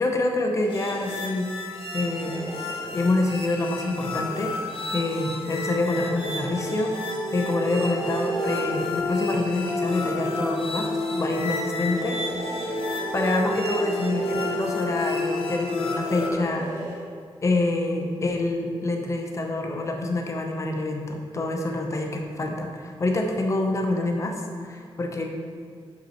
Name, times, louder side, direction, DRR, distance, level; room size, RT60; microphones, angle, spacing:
voice 1, 0.0-1.5 1.9-2.4 2.9-4.5 4.9-6.9 7.3-12.2 13.1-16.9 17.4-25.2, left 2 dB, 30° left, 2 dB, 0.8 m, -26 dB
sound 1, 0.6-1.2 2.0-3.2 3.7-5.1 5.8-7.0 7.7-9.1 9.8-11.1 11.7-13.2 13.7-14.8 15.5-17.1, right 1 dB, 25° right, 1.4 m, -38 dB
Calm Synthesizer C, 0.7-16.3, left 2 dB, 70° left, 1.2 m, -30 dB
5.8 x 5.7 x 5.7 m, 2.2 s
wide cardioid pair, 140°, 10 cm